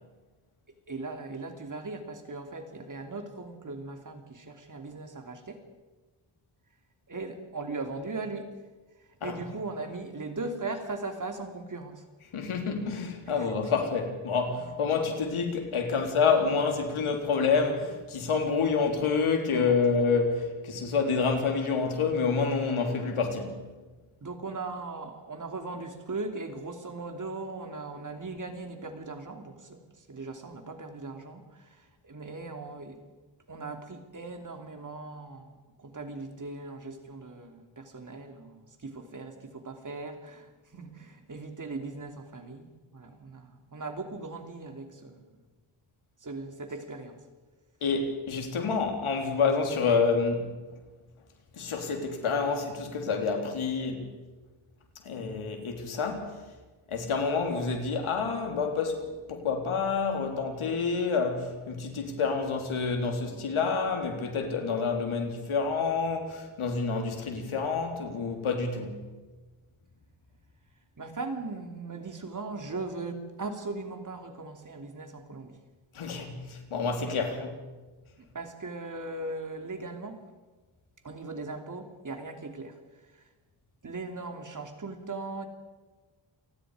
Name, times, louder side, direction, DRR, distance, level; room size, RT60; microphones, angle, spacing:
voice 1, 0.9-5.6 7.1-8.6 9.1-12.0 13.4-13.7 19.5-19.8 24.2-33.0 33.5-45.4 46.2-47.2 71.0-75.6 78.2-80.2 81.0-82.8 83.1-83.2 83.8-85.5, right 3 dB, 40° right, 3.1 m, -39 dB
voice 2, 12.3-23.6 47.8-50.5 51.5-54.1 55.0-56.4 56.9-69.0 75.9-77.6, left 5 dB, 85° left, 3.8 m, -28 dB
28.5 x 19.5 x 5.1 m
wide cardioid pair, 105°, 48 cm